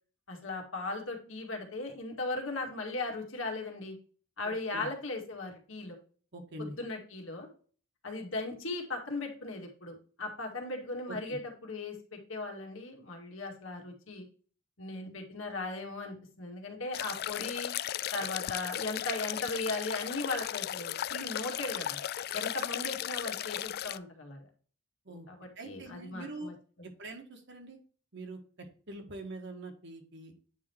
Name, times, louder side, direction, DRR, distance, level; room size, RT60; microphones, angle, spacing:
voice 1, 0.3-4.0 4.4-6.0 6.6-7.5 8.0-14.3 14.8-17.7 18.1-22.0 22.3-24.5 25.3-26.9, left 2 dB, 80° left, 2 dB, 2.0 m, -38 dB
voice 2, 6.3-6.8 11.1-11.4 25.0-25.3 25.6-26.5 27.0-27.8 28.1-28.4 28.9-30.3, right 2 dB, 65° right, 4 dB, 1.6 m, -43 dB
sound 1, 16.9-24.0, left 11 dB, 50° left, 0.3 m, -36 dB
9.3 x 3.7 x 4.5 m, 0.42 s
head